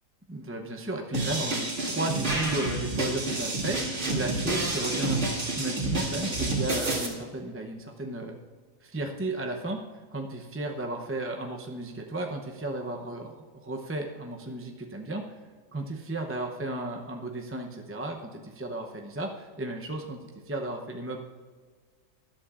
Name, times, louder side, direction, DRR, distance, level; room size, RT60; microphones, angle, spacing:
voice 1, 0.3-8.4 8.8-15.3 15.7-21.2, right 2 dB, 15° right, 1 dB, 0.5 m, -34 dB
sound 1, 1.1-7.1, right 2 dB, 60° right, 2.4 m, -29 dB
19.5 x 11.5 x 2.5 m, 1.5 s
omnidirectional pair, 1.4 m